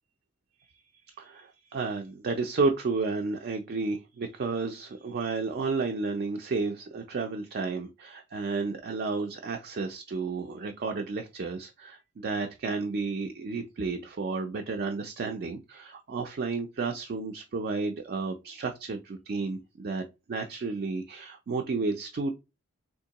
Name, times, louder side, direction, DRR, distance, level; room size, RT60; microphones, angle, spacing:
voice 1, 1.2-22.3, right 4 dB, 45° right, 0.4 m, -32 dB
3.5 x 2.8 x 2.8 m
head